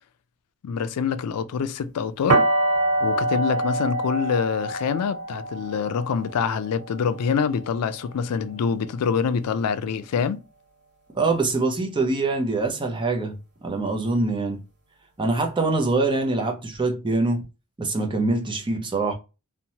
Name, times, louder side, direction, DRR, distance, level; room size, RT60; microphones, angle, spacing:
voice 1, 0.6-2.4 3.0-10.4, left 6 dB, 85° left, 0.4 m, -25 dB
sound 1, 2.3-8.1, right 2 dB, 80° right, 1.2 m, -25 dB
voice 2, 11.1-14.6 15.2-17.4 17.8-19.1, right 3 dB, 20° right, 0.5 m, -24 dB
2.9 x 2.1 x 2.7 m
head